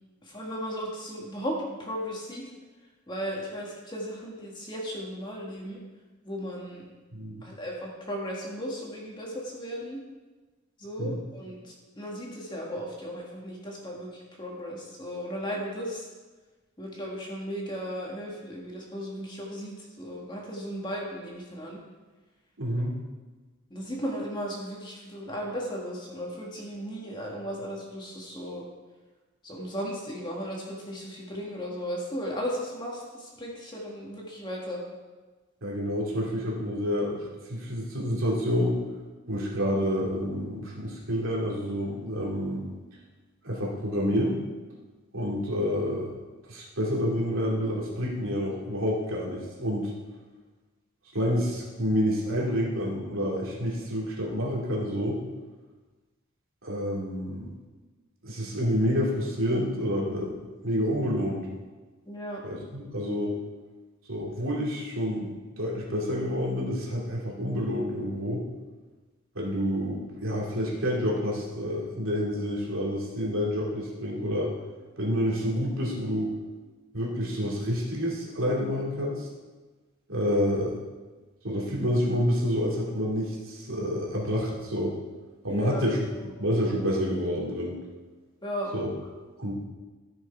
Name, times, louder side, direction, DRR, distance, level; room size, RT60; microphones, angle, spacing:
voice 1, 0.2-2.4 3.1-5.8 6.2-6.8 7.4-10.0 10.8-16.1 16.8-21.8 22.7-22.8 23.7-28.6 29.4-34.8 62.1-62.4 85.5-85.8 86.1-86.3 88.4-88.7, equal, 20° left, -2 dB, 1.7 m, -36 dB
voice 2, 7.1-7.4 11.0-11.2 22.6-23.0 35.6-38.8 39.3-42.6 43.4-44.4 45.1-46.1 46.5-49.9 51.1-55.2 56.6-57.5 58.2-60.3 60.6-61.5 62.4-63.4 64.1-65.3 65.6-68.4 69.3-74.5 75.0-76.3 76.9-79.3 80.1-80.7 81.4-84.9 85.4-86.1 86.4-87.8 88.7-88.9 89.4-89.5, equal, 70° right, -4 dB, 2.6 m, -28 dB
14.0 x 6.3 x 4.6 m, 1.3 s
head